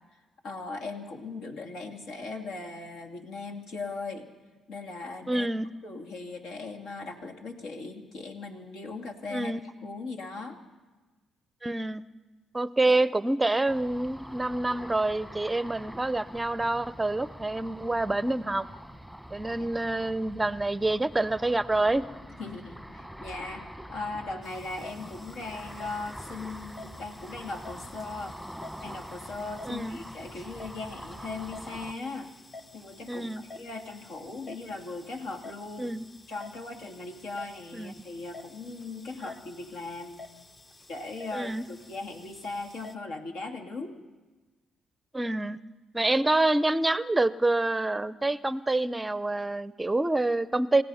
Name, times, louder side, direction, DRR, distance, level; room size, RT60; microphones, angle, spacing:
voice 1, 0.4-4.3 4.7-5.5 5.8-9.5 9.8-10.6 12.8-13.0 19.6-19.7 22.4-28.4 28.8-32.3 32.7-35.9 36.3-40.2 40.9-44.0, left 3 dB, 80° left, 2 dB, 2.5 m, -39 dB
voice 2, 5.3-5.7 9.3-9.6 11.6-12.0 12.5-18.7 19.3-22.0 29.7-30.0 33.1-33.4 35.8-36.1 37.7-37.9 39.2-39.3 41.3-41.6 45.1-45.6 45.9-50.8, right 2 dB, 15° right, 15 dB, 0.6 m, -27 dB
Ocean, 13.7-31.9, equal, 5° left, 1.3 m, -44 dB
sound 1, 24.4-42.9, left 3 dB, 30° left, 1.0 m, -50 dB
29.0 x 16.5 x 5.7 m, 1.2 s
cardioid pair, 90°, 0 cm